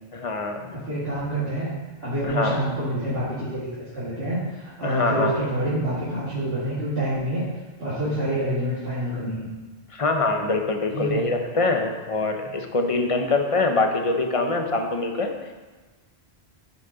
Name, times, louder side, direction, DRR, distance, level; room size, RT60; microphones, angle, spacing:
voice 1, 0.1-0.7 2.2-2.6 4.8-5.3 9.9-15.3, left 3 dB, 35° left, 4 dB, 0.7 m, -24 dB
voice 2, 0.7-1.7 2.0-7.4 7.8-9.5 10.9-11.3, right 1 dB, 60° right, -11 dB, 2.2 m, -27 dB
9.2 x 6.2 x 3.9 m, 1.3 s
omnidirectional pair, 1.2 m